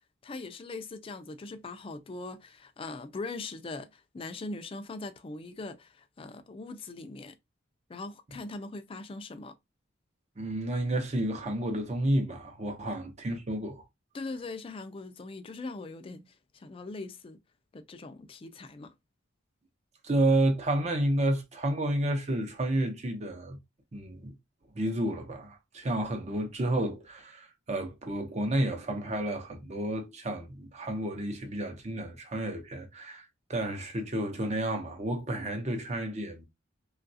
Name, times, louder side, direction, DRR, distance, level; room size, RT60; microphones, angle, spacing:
voice 1, 0.2-7.4 7.9-9.5 14.1-17.4 17.7-18.9, left 3 dB, 30° left, 0.4 m, -41 dB
voice 2, 10.4-13.8 20.0-23.6 23.9-24.3 24.7-33.2 33.5-36.4, right 1 dB, 35° right, 0.7 m, -30 dB
3.0 x 2.4 x 2.6 m
head